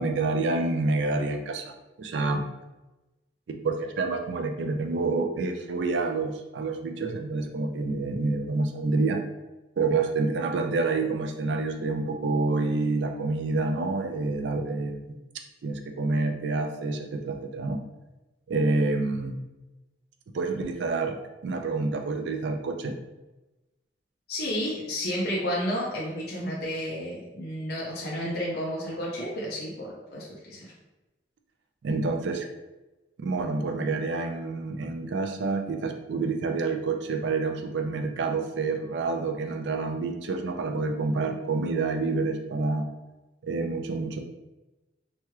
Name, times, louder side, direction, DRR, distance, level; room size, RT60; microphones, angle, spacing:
voice 1, 0.0-1.7 2.0-2.4 3.5-9.2 9.8-15.0 15.6-17.8 18.5-19.4 20.3-21.2 21.4-23.0 31.8-32.5 33.2-42.9 43.4-44.2, right 3 dB, 70° right, 5 dB, 0.4 m, -28 dB
voice 2, 24.3-30.7, equal, 55° left, -5 dB, 0.5 m, -31 dB
3.0 x 2.3 x 3.1 m, 1.1 s
head